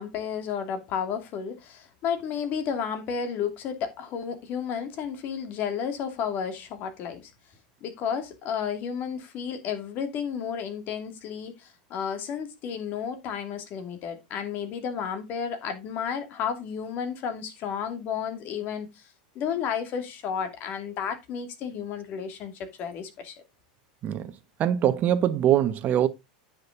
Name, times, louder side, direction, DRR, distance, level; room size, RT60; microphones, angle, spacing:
voice 1, 0.0-7.3 7.8-19.1 19.3-23.4, left 7 dB, 45° left, 2.7 m, -32 dB
voice 2, 24.6-26.1, right 10 dB, 40° right, 1.2 m, -23 dB
9.6 x 6.5 x 3.9 m
hypercardioid pair, 105°, 4 cm